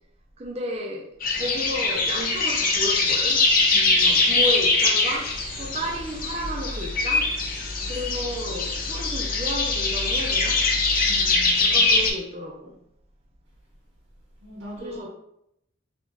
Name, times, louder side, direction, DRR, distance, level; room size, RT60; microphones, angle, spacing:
voice 1, 0.4-3.5 4.0-7.3 7.9-10.7 11.6-12.7 14.8-15.1, equal, 30° right, 0.5 m, -32 dB
sound 1, 1.2-12.1, left 3 dB, 45° left, 0.8 m, -23 dB
voice 2, 3.7-4.3 11.0-12.0 14.4-15.1, right 1 dB, 80° right, 1.0 m, -40 dB
3.4 x 2.9 x 3.9 m
head